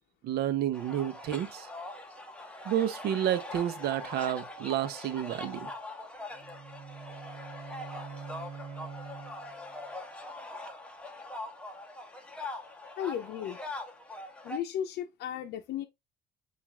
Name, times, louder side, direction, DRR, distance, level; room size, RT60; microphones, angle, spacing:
voice 1, 0.2-1.7 2.6-5.7, right 11 dB, 70° right, 0.7 m, -30 dB
sound 1, 0.7-14.6, left 2 dB, 5° left, 0.9 m, -42 dB
sound 2, 6.3-9.8, right 6 dB, 45° right, 0.8 m, -45 dB
voice 2, 13.0-13.6 14.4-15.9, left 10 dB, 75° left, 0.6 m, -35 dB
7.1 x 2.5 x 2.3 m
cardioid pair, 110°, 17 cm